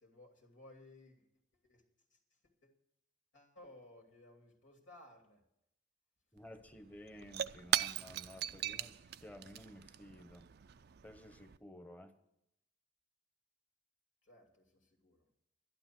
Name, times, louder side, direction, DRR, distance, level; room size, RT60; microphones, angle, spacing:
voice 1, 0.0-1.3 1.5-1.8 2.1-2.2 2.6-2.7 3.3-5.4 14.2-15.3, left 1 dB, 80° left, 1 dB, 2.9 m, -59 dB
voice 2, 6.3-10.5 11.0-12.1, left 1 dB, 10° left, 8 dB, 1.1 m, -54 dB
Shatter / Crushing, 6.4-6.5 6.7-11.6, right 10 dB, 55° right, 0.4 m, -40 dB
12.0 x 12.0 x 6.1 m, 0.82 s
head